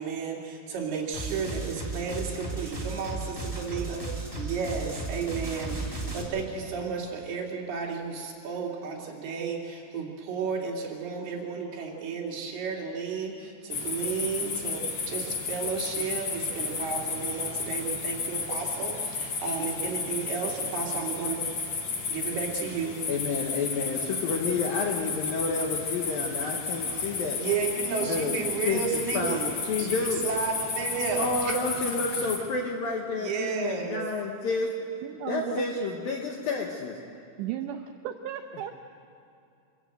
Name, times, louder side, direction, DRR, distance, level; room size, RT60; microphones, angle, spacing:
voice 1, 0.0-21.4 22.1-23.0 27.4-29.5 29.8-31.6 31.9-32.0 33.2-34.0, right 5 dB, 60° right, -2 dB, 4.2 m, -33 dB
sound 1, 1.1-6.2, right 2 dB, 10° right, 1.7 m, -35 dB
sound 2, 13.7-32.4, left 4 dB, 50° left, 2.0 m, -32 dB
voice 2, 23.1-27.4 28.0-28.4 28.6-30.3 31.2-34.7 35.3-37.0, left 4 dB, 70° left, 1 dB, 2.4 m, -30 dB
voice 3, 35.0-35.7 37.4-38.7, right 11 dB, 80° right, 6 dB, 2.6 m, -35 dB
26.0 x 15.0 x 7.9 m, 2.6 s
omnidirectional pair, 5.6 m